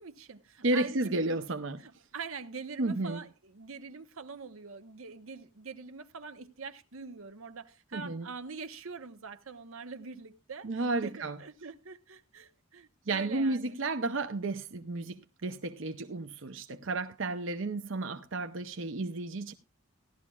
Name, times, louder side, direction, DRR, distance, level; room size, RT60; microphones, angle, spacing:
voice 1, 0.0-1.4 1.8-10.7 11.0-13.7, right 5 dB, 85° right, 1.0 m, -44 dB
voice 2, 0.6-1.8 2.8-3.2 7.9-8.3 10.6-11.4 13.1-19.5, right 2 dB, 65° right, 0.7 m, -32 dB
16.5 x 12.0 x 2.4 m
head